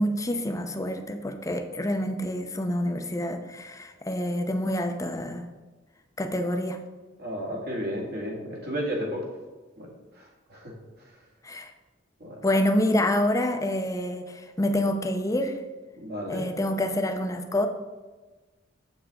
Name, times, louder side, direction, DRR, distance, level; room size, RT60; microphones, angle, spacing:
voice 1, 0.0-5.5 6.2-6.8 11.4-11.7 12.4-15.6 16.3-17.7, left 1 dB, 15° left, 6 dB, 0.6 m, -27 dB
voice 2, 7.2-9.2 9.8-9.9 10.5-10.7 12.2-12.4 16.0-16.5, equal, 55° right, -1 dB, 2.0 m, -32 dB
7.8 x 7.0 x 3.7 m, 1.2 s
head